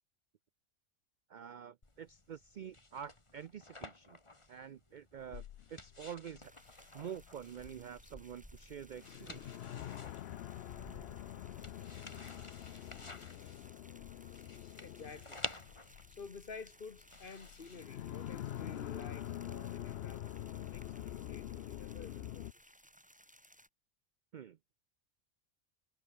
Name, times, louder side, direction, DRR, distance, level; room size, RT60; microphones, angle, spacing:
voice 1, 1.3-4.2 4.5-5.4 5.7-6.5 6.9-9.5 24.3-24.6, right 8 dB, 60° right, 0.5 m, -47 dB
sound 1, 1.8-19.1, left 2 dB, 25° left, 2.0 m, -52 dB
sound 2, 5.2-22.5, left 12 dB, 65° left, 0.7 m, -46 dB
sound 3, 6.4-23.7, equal, 5° right, 3.2 m, -61 dB
voice 2, 14.8-15.8 16.1-22.5, left 5 dB, 45° left, 1.4 m, -51 dB
omnidirectional pair, 1.3 m